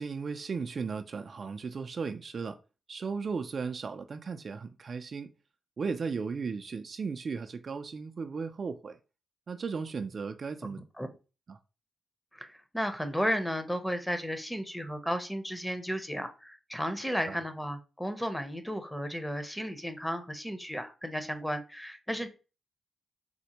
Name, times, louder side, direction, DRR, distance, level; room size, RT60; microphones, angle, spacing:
voice 1, 0.0-2.6 2.9-5.3 5.8-9.0 9.5-10.8 11.5-11.6 17.3-17.4, right 5 dB, 55° right, 0.3 m, -36 dB
voice 2, 10.6-11.1 12.3-22.3, equal, 5° left, 0.7 m, -34 dB
4.2 x 2.1 x 2.9 m
supercardioid pair, 55°, 0 cm